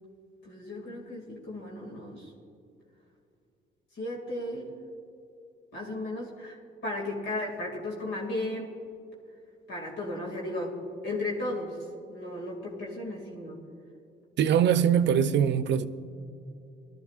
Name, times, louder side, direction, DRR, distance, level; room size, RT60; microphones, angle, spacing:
voice 1, 0.4-2.3 3.9-4.7 5.7-8.8 9.7-10.8 11.0-13.6, left 1 dB, 75° left, 2.3 m, -35 dB
voice 2, 14.4-15.9, right 8 dB, 65° right, 0.5 m, -22 dB
19.0 x 13.0 x 2.4 m
cardioid pair, 90°, 20 cm